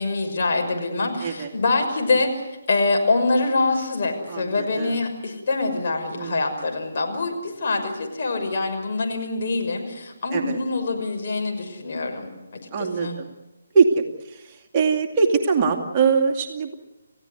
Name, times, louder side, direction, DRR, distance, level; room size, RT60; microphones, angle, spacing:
voice 1, 0.0-2.3 2.7-12.3 12.8-13.2, left 3 dB, 50° left, 2 dB, 6.2 m, -24 dB
voice 2, 1.2-1.5 4.3-5.0 6.2-6.5 10.3-10.6 12.7-13.3 13.7-16.7, right 5 dB, 30° right, 2 dB, 2.5 m, -22 dB
30.0 x 16.0 x 8.3 m, 1.0 s
figure-of-eight pair, 145°, 0 cm